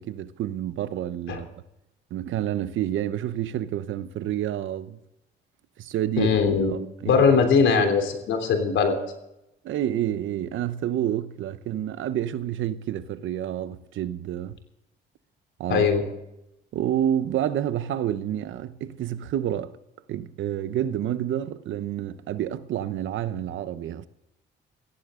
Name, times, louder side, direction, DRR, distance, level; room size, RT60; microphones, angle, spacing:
voice 1, 0.0-1.5 2.1-5.0 5.8-6.3 6.7-7.3 7.6-7.9 9.6-14.6 15.6-15.9 16.7-19.8 20.1-24.1, right 11 dB, 75° right, 1.0 m, -29 dB
voice 2, 6.2-6.7 7.0-8.9 15.7-16.0, left 5 dB, 75° left, 3.4 m, -20 dB
17.0 x 15.5 x 3.8 m
cardioid pair, 90°, 20 cm